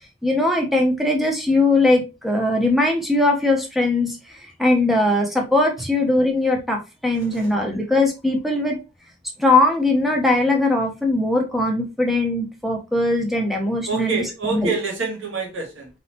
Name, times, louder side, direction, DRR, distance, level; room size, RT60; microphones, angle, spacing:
voice 1, 0.2-4.2 4.6-8.8 9.4-14.7, left 2 dB, ahead, 0.9 m, -20 dB
voice 2, 13.9-15.9, right 4 dB, 70° right, 2.0 m, -27 dB
4.1 x 3.8 x 2.9 m
head